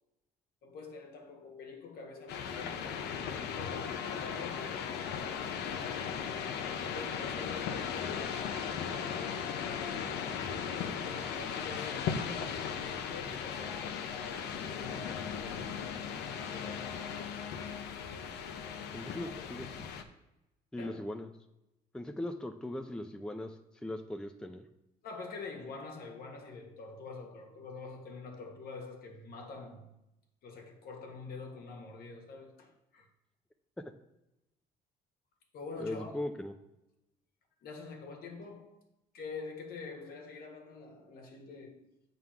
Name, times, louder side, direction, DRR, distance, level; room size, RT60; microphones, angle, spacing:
voice 1, 0.6-5.9 6.8-9.5 10.5-15.7 16.5-17.1 19.2-19.3 20.8-21.1 25.0-29.9 30.4-33.1 35.5-36.1 37.6-38.8 39.1-41.9, left 4 dB, 65° left, 1.6 m, -46 dB
sound 1, 2.3-20.0, left 7 dB, 80° left, 0.8 m, -37 dB
voice 2, 18.9-19.9 20.7-21.3 21.9-23.6 23.8-24.6 35.8-36.5, left 1 dB, 5° left, 0.5 m, -39 dB
7.7 x 3.9 x 5.7 m
cardioid pair, 110°, 17 cm